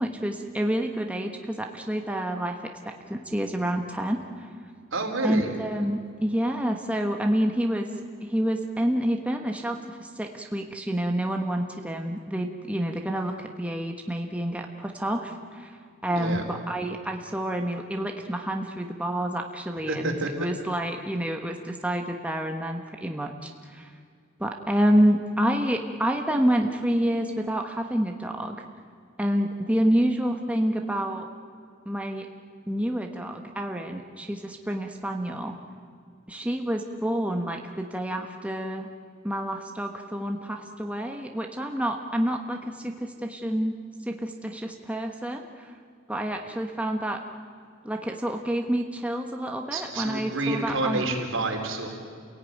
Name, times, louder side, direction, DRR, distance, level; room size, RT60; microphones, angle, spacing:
voice 1, 0.0-4.5 5.2-7.9 8.2-23.9 24.4-28.6 29.2-31.3 31.8-32.3 32.7-35.6 36.3-38.9 39.2-43.8 44.0-45.7 46.1-47.2 47.8-51.1, equal, 5° right, 3 dB, 1.2 m, -28 dB
voice 2, 4.9-5.5 16.1-16.4 19.9-20.3 49.7-51.9, right 2 dB, 70° right, 2 dB, 3.9 m, -28 dB
29.0 x 17.0 x 9.4 m, 2.2 s
head